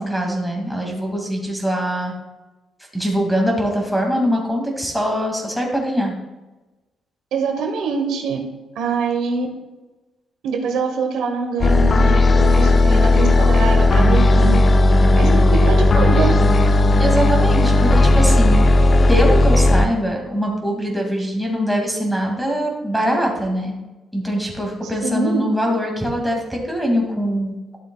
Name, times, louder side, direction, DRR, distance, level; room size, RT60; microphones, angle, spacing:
voice 1, 0.0-2.1 2.9-6.1 17.0-23.7 24.1-27.5, equal, ahead, -1 dB, 2.2 m, -22 dB
voice 2, 7.3-8.4 8.8-9.5 10.4-14.6 15.2-16.3 25.0-25.4, right 4 dB, 80° right, 4 dB, 1.1 m, -24 dB
sound 1, 11.6-19.9, left 2 dB, 35° left, 0.5 m, -14 dB
12.0 x 6.9 x 2.3 m, 1.1 s
cardioid pair, 90°, 0 cm